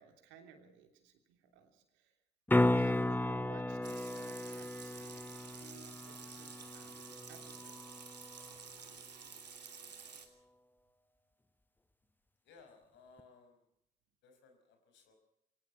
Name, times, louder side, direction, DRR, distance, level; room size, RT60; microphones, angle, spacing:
voice 1, 0.0-2.1 2.7-7.0 7.3-8.1, right 7 dB, 65° right, 6 dB, 3.2 m, -58 dB
sound 1, 2.5-8.5 13.2-13.3, left 1 dB, 10° left, 1.0 m, -34 dB
Water tap faucet / Sink (filling or washing) / Liquid, 3.8-10.3, right 6 dB, 85° right, 1.9 m, -51 dB
voice 2, 12.4-13.6 14.2-15.1, left 4 dB, 60° left, 6 dB, 5.2 m, -61 dB
24.0 x 18.5 x 5.8 m, 0.79 s
figure-of-eight pair, 45°, 21 cm